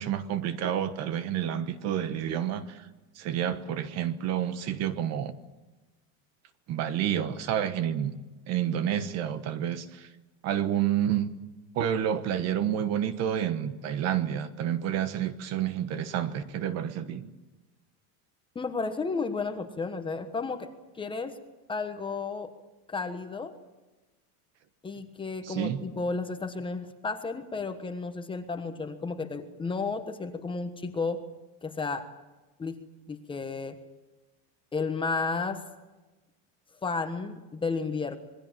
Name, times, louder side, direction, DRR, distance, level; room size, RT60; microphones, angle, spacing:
voice 1, 0.0-2.9 3.1-5.4 6.7-8.1 8.5-10.1 10.4-11.3 11.7-17.3 25.4-25.8, right 10 dB, 35° right, 12 dB, 1.2 m, -29 dB
voice 2, 18.5-20.7 20.9-21.4 21.7-22.5 22.9-23.5 24.8-31.2 31.6-32.0 32.6-32.7 33.1-33.7 34.7-35.6 36.8-38.2, left 4 dB, 10° left, 7 dB, 1.3 m, -32 dB
27.0 x 21.5 x 7.5 m, 1.1 s
cardioid pair, 175°, 43 cm